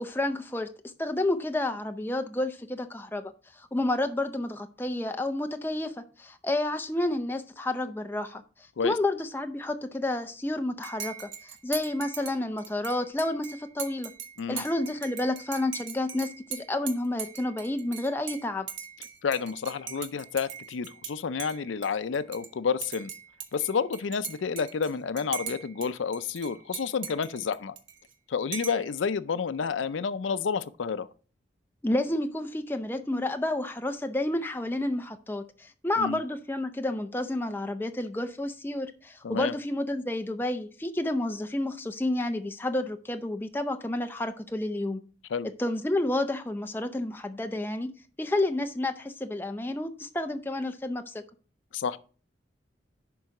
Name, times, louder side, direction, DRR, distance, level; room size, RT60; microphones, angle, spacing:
voice 1, 0.0-8.4 8.8-14.1 14.5-18.7 31.8-45.0 45.6-47.9 48.2-51.2, left 1 dB, 10° left, 0.5 m, -30 dB
Dishes pots and pans / Cutlery silverware / Chink clink, 10.8-21.1 21.4-22.5 22.8-25.9 26.1-28.1 28.5-28.9, right 8 dB, 80° right, 1.1 m, -40 dB
voice 2, 19.2-23.1 23.5-27.8 28.3-31.1 36.0-36.2 39.2-39.5 45.3-45.5 51.7-52.0, left 6 dB, 90° left, 0.5 m, -30 dB
11.0 x 3.9 x 4.7 m
head